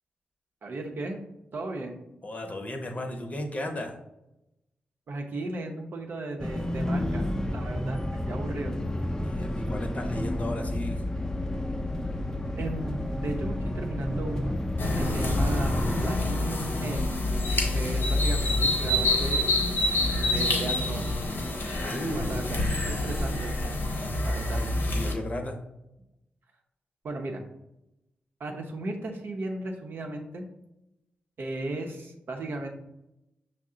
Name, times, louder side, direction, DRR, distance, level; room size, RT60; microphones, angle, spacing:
voice 1, 0.6-1.2 1.5-2.0 5.1-7.3 7.5-8.0 8.3-8.7 12.6-14.6 14.9-17.2 17.7-19.5 20.3-21.1 22.1-23.6 24.2-24.7 27.0-27.4 28.4-30.4 31.4-32.7, right 2 dB, 65° right, 2 dB, 0.7 m, -35 dB
voice 2, 2.2-4.0 9.2-11.0 21.8-22.5 24.9-25.6, left 1 dB, 40° left, 4 dB, 0.7 m, -35 dB
sound 1, 6.4-16.1, left 1 dB, 15° left, 0.4 m, -30 dB
sound 2, 14.8-25.1, left 1 dB, 65° left, 0.9 m, -27 dB
5.5 x 2.1 x 3.7 m, 0.88 s
supercardioid pair, 45°, 4 cm